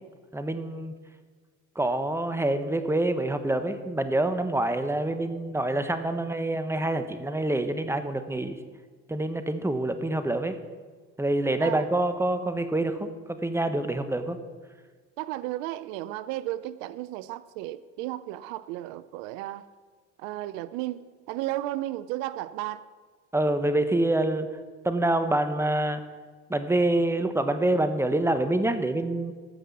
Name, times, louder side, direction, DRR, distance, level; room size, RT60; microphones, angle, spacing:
voice 1, 0.3-0.9 1.7-8.6 9.1-10.6 11.2-14.4 23.3-24.5 24.8-26.0 26.5-29.3, right 1 dB, 5° right, 1.2 m, -26 dB
voice 2, 15.2-19.7 20.2-21.0 21.3-22.8, right 15 dB, 80° right, 0.6 m, -34 dB
14.5 x 6.1 x 7.1 m
supercardioid pair, 70°, 39 cm